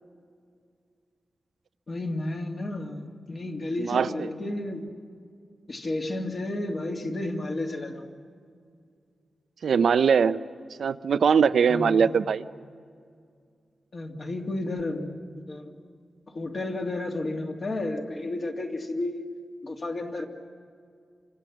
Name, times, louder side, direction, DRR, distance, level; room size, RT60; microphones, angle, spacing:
voice 1, 1.9-4.9 5.7-8.1 11.7-12.1 13.9-15.1 15.5-15.7 16.3-19.3 19.6-20.3, left 2 dB, 40° left, 2 dB, 2.4 m, -32 dB
voice 2, 3.8-4.3 9.6-10.4 10.8-12.5, right 6 dB, 70° right, 12 dB, 0.6 m, -21 dB
29.0 x 25.5 x 7.4 m, 2.2 s
wide cardioid pair, 160°, 0 cm